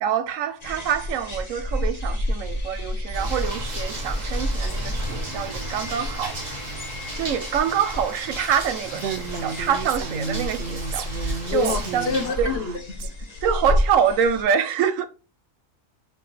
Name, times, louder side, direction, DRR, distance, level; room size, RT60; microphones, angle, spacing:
voice 1, 0.0-6.4 7.1-12.5 13.4-15.1, right 8 dB, 85° right, 1.0 m, -25 dB
sound 1, 0.6-14.4, left 1 dB, 30° left, 1.3 m, -30 dB
sound 2, 3.1-12.3, right 1 dB, 35° right, 1.7 m, -36 dB
Female speech woman speaking, 8.9-13.1, right 5 dB, 65° right, 0.7 m, -33 dB
voice 2, 11.5-13.1, left 6 dB, 55° left, 1.0 m, -27 dB
7.7 x 3.8 x 3.2 m
omnidirectional pair, 1.4 m